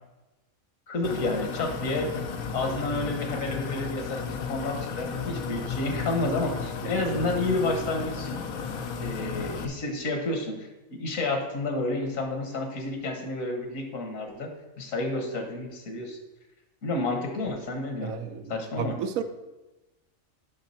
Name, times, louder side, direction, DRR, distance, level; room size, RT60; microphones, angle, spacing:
voice 1, 0.9-2.1 2.5-8.4 9.0-14.5 14.8-16.2 16.8-18.1 18.5-18.9, left 2 dB, 70° left, 4 dB, 1.6 m, -30 dB
sound 1, 1.0-9.7, left 5 dB, 90° left, 1.2 m, -34 dB
voice 2, 18.0-19.2, right 6 dB, 90° right, 9 dB, 1.1 m, -32 dB
7.3 x 5.9 x 4.3 m, 1.1 s
omnidirectional pair, 1.4 m